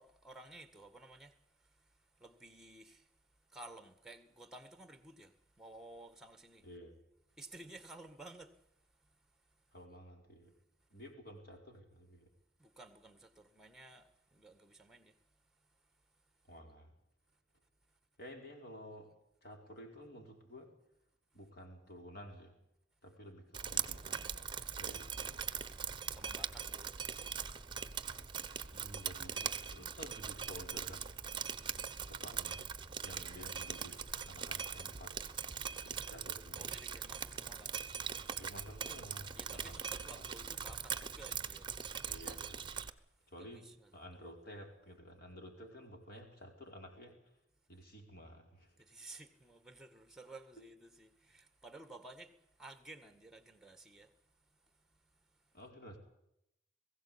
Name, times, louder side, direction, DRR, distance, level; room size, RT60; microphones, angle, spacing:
voice 1, 0.0-3.1 3.5-6.7 7.3-8.7 9.0-9.1 12.6-15.2 26.1-27.0 36.6-37.8 39.3-42.0 43.4-43.9 48.8-54.1 54.7-55.0, right 2 dB, 5° right, 1.7 m, -55 dB
voice 2, 9.7-10.5 10.9-12.3 16.5-16.9 18.2-19.1 19.4-20.7 21.3-22.6 23.0-24.3 24.8-25.5 28.7-31.1 32.0-32.7 33.0-34.0 34.3-35.2 35.8-36.7 38.4-40.2 42.0-42.7 43.3-47.4 47.7-48.7 55.5-56.0, equal, 50° left, 4.8 m, -52 dB
Drip, 23.5-42.9, right 7 dB, 25° right, 1.0 m, -41 dB
21.0 x 16.5 x 8.7 m
head